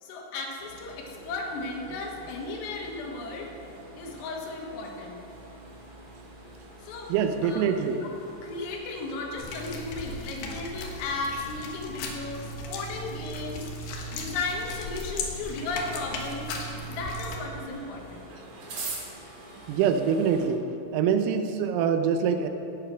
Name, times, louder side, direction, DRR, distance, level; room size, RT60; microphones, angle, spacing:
voice 1, 0.0-3.5 4.0-5.2 6.8-7.1 7.4-7.6 8.0-8.1 8.4-13.7 14.1-16.5 16.9-18.2, left 3 dB, 85° left, 0 dB, 4.2 m, -35 dB
sound 1, 0.6-20.5, right 2 dB, 45° right, 2.2 m, -46 dB
voice 2, 7.1-8.1 19.7-20.7 20.9-22.5, right 7 dB, 90° right, 7 dB, 3.5 m, -24 dB
sound 2, 9.4-17.4, left 1 dB, 70° left, 2.8 m, -37 dB
15.5 x 8.5 x 5.8 m, 2.9 s
omnidirectional pair, 5.9 m